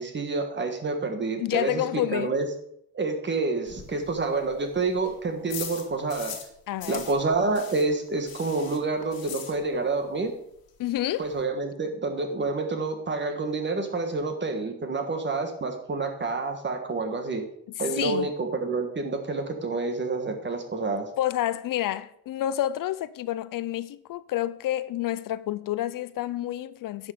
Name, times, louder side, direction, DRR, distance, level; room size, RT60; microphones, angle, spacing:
voice 1, 0.0-2.5 2.9-6.4 6.9-10.3 11.2-17.5 17.8-21.1, right 3 dB, 30° right, 1.5 m, -28 dB
voice 2, 1.4-2.3 6.7-7.1 10.8-11.3 17.9-18.3 21.2-27.1, left 13 dB, 65° left, 0.5 m, -29 dB
sound 1, 3.7-6.5 6.8-10.0 10.3-10.4 10.7-10.8 11.0-11.4, left 8 dB, 85° left, 1.9 m, -41 dB
10.5 x 6.4 x 5.0 m
cardioid pair, 120°, 35 cm